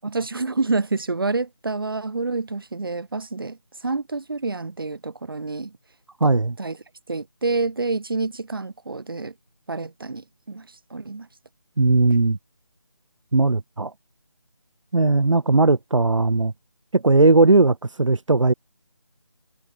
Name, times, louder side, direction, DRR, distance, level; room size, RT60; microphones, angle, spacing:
voice 1, 0.0-5.8 6.6-6.8 7.1-9.3 9.7-11.3, right 3 dB, 50° right, 6.5 m, -28 dB
voice 2, 6.2-6.6 11.8-12.4 13.3-13.9 14.9-16.5 16.9-18.5, right 3 dB, 85° right, 1.2 m, -18 dB
figure-of-eight pair, 175°, 15 cm